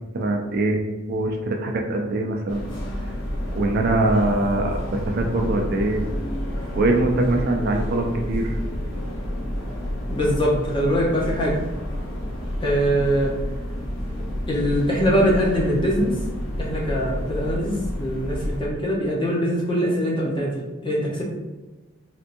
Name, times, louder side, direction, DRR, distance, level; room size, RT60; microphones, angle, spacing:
voice 1, 0.1-0.8 1.1-2.6 3.5-6.0 6.8-8.6, right 2 dB, 50° right, 3 dB, 0.4 m, -23 dB
sound 1, 2.5-18.6, equal, 80° left, 0.8 m, -30 dB
voice 2, 10.1-11.6 12.6-13.3 14.5-16.1 16.6-21.2, equal, 25° left, -4 dB, 0.8 m, -22 dB
3.4 x 2.7 x 2.6 m, 1.2 s
head